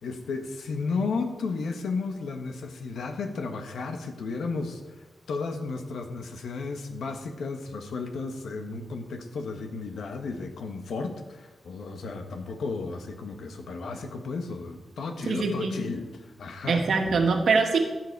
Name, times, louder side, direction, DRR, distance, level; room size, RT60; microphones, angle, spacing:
voice 1, 0.0-16.1 16.4-17.2, left 4 dB, 85° left, 5 dB, 1.4 m, -33 dB
voice 2, 15.2-15.7 16.7-17.8, right 4 dB, 75° right, 3 dB, 1.7 m, -23 dB
15.0 x 7.8 x 4.7 m, 1.2 s
cardioid pair, 90°, 0 cm